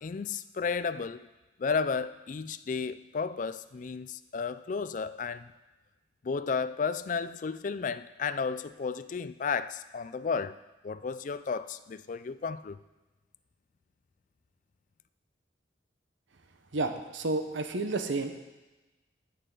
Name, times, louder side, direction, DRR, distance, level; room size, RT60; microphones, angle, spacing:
voice 1, 0.0-1.3 1.6-5.5 6.2-10.6 10.8-12.8, left 5 dB, 40° left, 0.3 m, -33 dB
voice 2, 16.7-18.3, right 2 dB, 80° right, 1.0 m, -31 dB
13.5 x 8.5 x 3.8 m
head